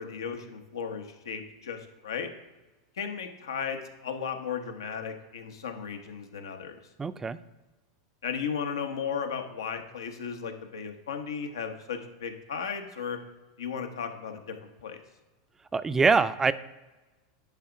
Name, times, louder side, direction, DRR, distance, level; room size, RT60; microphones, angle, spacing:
voice 1, 0.0-2.3 3.0-6.8 8.2-13.2 13.6-15.0, left 6 dB, 85° left, 6 dB, 1.0 m, -35 dB
voice 2, 7.0-7.4 15.7-16.5, right 4 dB, 15° right, 14 dB, 0.4 m, -24 dB
10.5 x 3.5 x 4.9 m, 1.2 s
hypercardioid pair, 100°, 2 cm